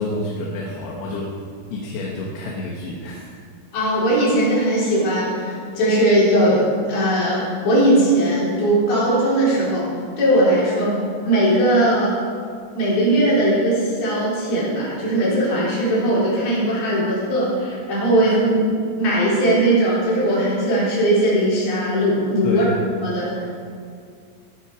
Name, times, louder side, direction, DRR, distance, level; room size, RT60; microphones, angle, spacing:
voice 1, 0.0-1.3 1.7-3.4 18.2-18.4 22.4-22.8, left 2 dB, 80° left, -2 dB, 3.4 m, -28 dB
voice 2, 3.7-6.6 6.9-9.9 10.2-12.1 12.7-18.7 19.0-22.7 23.0-23.5, right 1 dB, 60° left, -8 dB, 5.8 m, -19 dB
15.5 x 9.8 x 4.9 m, 2.2 s
omnidirectional pair, 5.1 m